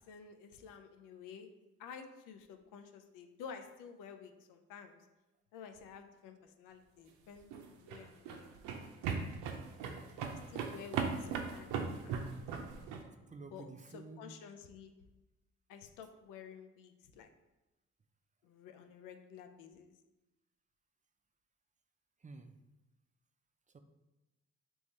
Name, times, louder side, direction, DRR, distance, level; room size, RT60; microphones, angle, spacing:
voice 1, 0.0-1.5 1.8-5.0 5.5-8.5 10.3-12.4 13.5-14.9 15.7-17.3 18.4-19.9, left 6 dB, 85° left, 7 dB, 0.5 m, -52 dB
sound 1, 7.4-13.0, right 6 dB, 85° right, 0.6 m, -38 dB
voice 2, 13.0-14.3 22.2-22.6 23.7-23.8, right 4 dB, 25° right, 7 dB, 0.4 m, -51 dB
3.5 x 3.0 x 4.1 m, 1.0 s
supercardioid pair, 60°, 31 cm